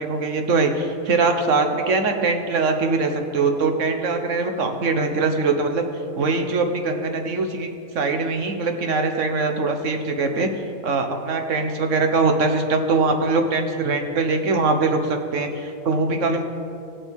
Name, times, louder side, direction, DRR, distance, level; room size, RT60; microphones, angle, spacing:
voice 1, 0.0-5.8 6.2-7.7 7.9-10.5 10.8-16.4, right 3 dB, 60° right, 5 dB, 1.3 m, -22 dB
19.0 x 7.1 x 3.6 m, 2.6 s
omnidirectional pair, 1.5 m